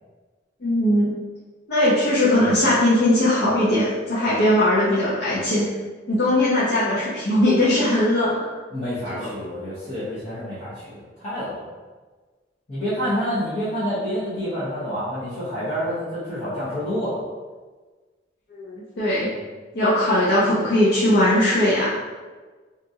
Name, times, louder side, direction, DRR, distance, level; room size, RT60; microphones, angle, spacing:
voice 1, 0.6-1.1 1.7-5.7 6.1-8.4 9.1-9.3 18.5-19.3 19.7-21.9, left 1 dB, 60° left, -9 dB, 0.6 m, -19 dB
voice 2, 8.7-11.7 12.7-17.2, equal, 40° left, -13 dB, 0.9 m, -28 dB
2.8 x 2.4 x 2.6 m, 1.3 s
head